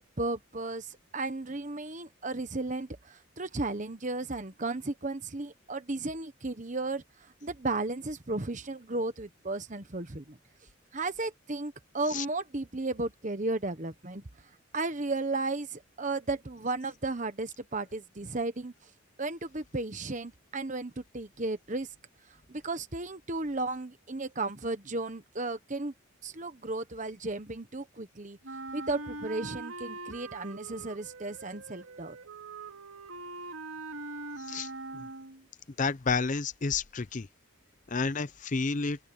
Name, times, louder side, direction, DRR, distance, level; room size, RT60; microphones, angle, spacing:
voice 1, 0.0-10.4 10.9-14.2 14.7-18.7 19.2-21.9 22.5-25.9 26.2-28.4 28.7-32.2, right 2 dB, 35° right, 1.2 m, -34 dB
Wind instrument woodwind instrument, 28.4-35.4, right 3 dB, 80° right, 3.1 m, -42 dB
voice 2, 35.8-37.3 37.9-39.0, left 4 dB, 35° left, 0.6 m, -30 dB
open air
head